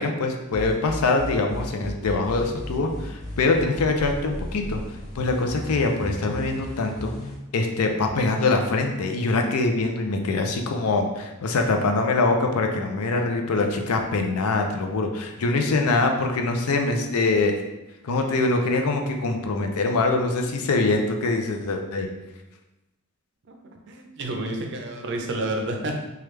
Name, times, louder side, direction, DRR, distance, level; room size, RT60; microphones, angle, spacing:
voice 1, 0.0-4.8 5.1-7.1 7.5-17.5 18.0-22.1, left 3 dB, 90° left, 4 dB, 0.5 m, -23 dB
sound 1, 0.5-7.4, left 1 dB, 35° left, 0.7 m, -35 dB
voice 2, 23.9-26.0, right 1 dB, 55° right, 2 dB, 0.5 m, -29 dB
3.3 x 2.3 x 3.1 m, 0.97 s
head